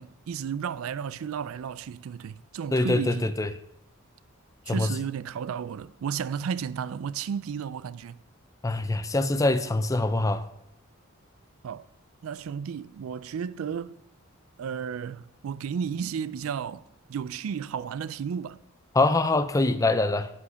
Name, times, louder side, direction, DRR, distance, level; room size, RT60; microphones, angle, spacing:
voice 1, 0.0-3.3 4.7-8.2 11.6-11.9 12.2-13.9 14.6-16.8 17.1-18.6, right 7 dB, 70° right, 0.3 m, -33 dB
voice 2, 2.7-3.5 4.7-4.9 8.6-10.4 19.0-20.3, left 2 dB, 15° left, 0.4 m, -24 dB
8.3 x 5.1 x 6.2 m
head